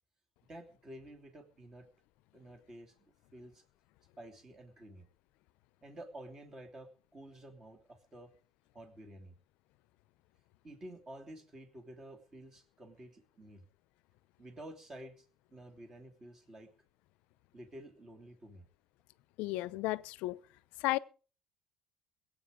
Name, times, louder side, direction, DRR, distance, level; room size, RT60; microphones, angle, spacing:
voice 1, 0.5-1.9 2.3-2.9 3.3-3.6 4.2-5.1 5.8-8.3 8.7-9.4 10.6-13.7 14.4-16.7 17.5-18.7, right 1 dB, 20° right, 2.8 m, -51 dB
voice 2, 19.4-20.4 20.8-21.0, left 18 dB, 70° left, 0.7 m, -33 dB
22.0 x 8.6 x 5.2 m
cardioid pair, 160°, 2 cm